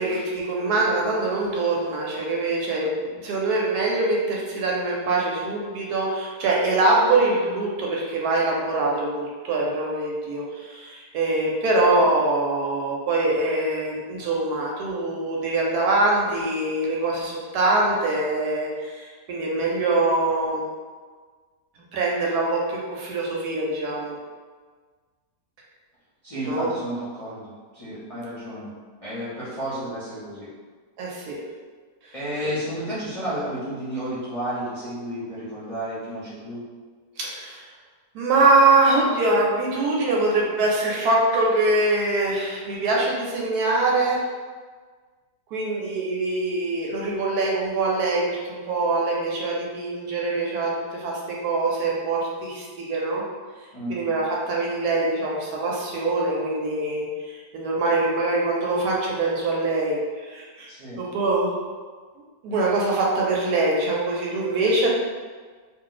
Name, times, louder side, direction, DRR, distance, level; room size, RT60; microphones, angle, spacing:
voice 1, 0.0-20.6 21.9-24.2 26.4-26.7 31.0-31.4 32.4-32.5 37.2-37.7 38.1-44.2 45.5-53.2 53.9-57.1 57.3-60.7 61.0-61.6 62.4-64.9, right 2 dB, 75° right, -3 dB, 1.1 m, -23 dB
voice 2, 26.2-28.7 29.0-30.5 32.1-36.6 53.7-54.1 60.7-61.0, right 1 dB, 30° left, -11 dB, 0.7 m, -32 dB
2.4 x 2.4 x 3.8 m, 1.5 s
omnidirectional pair, 1.8 m